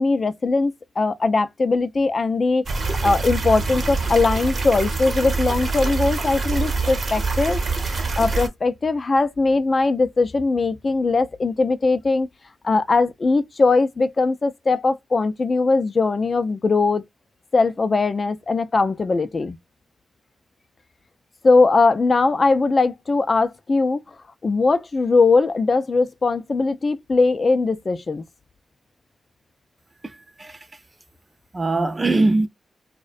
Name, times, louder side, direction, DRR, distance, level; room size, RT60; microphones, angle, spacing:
voice 1, 0.0-2.6 3.0-7.6 8.0-12.3 12.6-17.0 17.5-19.6 21.4-24.0 24.4-28.2, left 3 dB, 45° left, 0.4 m, -20 dB
sound 1, 2.7-8.5, right 3 dB, 50° right, 0.9 m, -25 dB
voice 2, 30.0-30.6 31.5-32.5, right 2 dB, 30° right, 0.4 m, -21 dB
2.3 x 2.1 x 2.5 m
cardioid pair, 60°, 0 cm